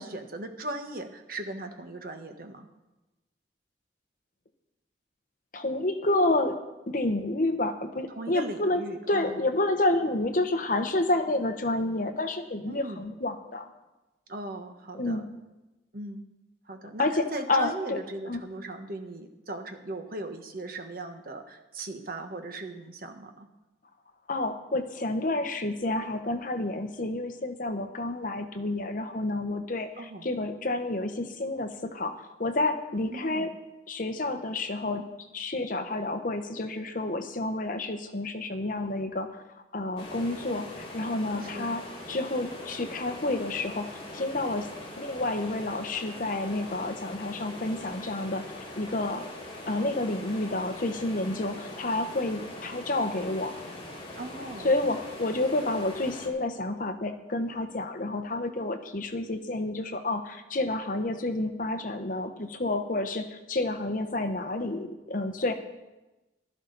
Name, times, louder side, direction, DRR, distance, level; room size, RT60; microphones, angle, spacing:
voice 1, 0.0-2.7 8.1-9.4 12.7-13.1 14.3-15.2 15.9-16.2 16.6-23.5 30.0-30.3 33.1-33.5 41.4-41.8 54.1-54.7, right 2 dB, 55° right, 6 dB, 1.3 m, -38 dB
voice 2, 5.5-6.6 6.9-8.8 9.1-13.7 14.9-15.3 17.0-18.0 18.3-18.4 24.3-33.5 33.9-35.0 35.3-39.4 39.7-44.7 45.0-48.4 48.8-49.3 49.7-53.6 54.6-65.5, left 2 dB, 50° left, 7 dB, 1.0 m, -29 dB
sound 1, 40.0-56.3, left 1 dB, 30° left, 2.6 m, -42 dB
15.5 x 12.5 x 4.0 m, 1.0 s
head